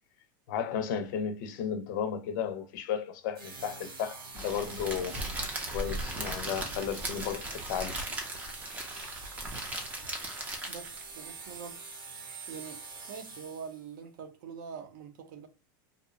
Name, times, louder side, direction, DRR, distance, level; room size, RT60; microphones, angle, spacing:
voice 1, 0.5-5.2 5.7-8.0, left 8 dB, 60° left, 0.5 m, -34 dB
sound 1, 3.3-13.9, right 4 dB, 90° right, 0.9 m, -45 dB
Crackle, 4.3-11.1, right 1 dB, 15° right, 0.4 m, -37 dB
voice 2, 10.7-11.8 12.5-15.5, right 6 dB, 60° right, 0.6 m, -44 dB
2.7 x 2.0 x 2.4 m
supercardioid pair, 160°, 12 cm